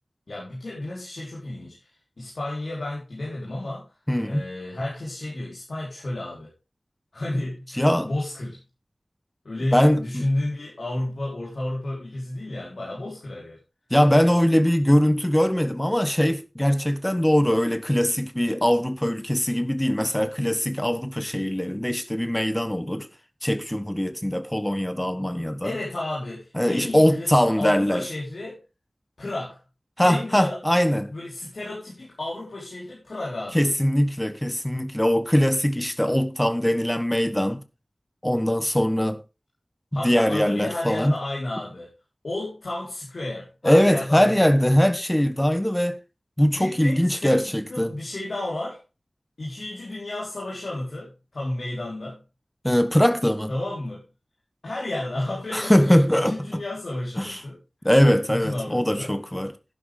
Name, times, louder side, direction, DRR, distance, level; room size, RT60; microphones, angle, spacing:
voice 1, 0.3-3.8 4.2-6.5 7.1-8.6 9.4-13.6 25.6-28.6 29.2-29.6 30.0-30.6 31.1-33.7 39.9-41.9 42.2-44.4 46.5-48.8 49.4-52.2 53.5-54.0 54.6-57.6 58.3-59.1, left 1 dB, 80° left, 4.6 m, -32 dB
voice 2, 4.1-4.5 7.8-8.1 9.7-10.3 13.9-23.1 23.4-25.7 26.5-28.1 30.0-31.1 33.5-37.6 38.2-39.2 39.9-41.2 43.6-46.0 46.4-47.9 52.6-53.5 55.5-56.6 57.2-57.4 57.8-59.5, equal, 15° left, 1.3 m, -21 dB
11.5 x 11.0 x 3.7 m
wide cardioid pair, 40°, 0 cm